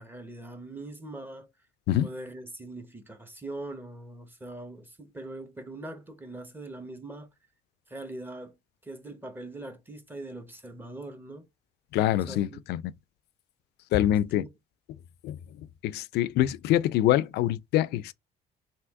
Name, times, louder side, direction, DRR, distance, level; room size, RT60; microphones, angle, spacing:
voice 1, 0.0-1.5 2.0-7.3 7.9-8.6 8.8-11.5 12.3-12.6 14.3-14.5, right 2 dB, 10° right, 1.0 m, -41 dB
voice 2, 11.9-12.8 13.9-14.4 15.2-15.4 15.8-18.1, left 13 dB, 75° left, 0.4 m, -25 dB
3.5 x 2.8 x 4.6 m
cardioid pair, 110°, 17 cm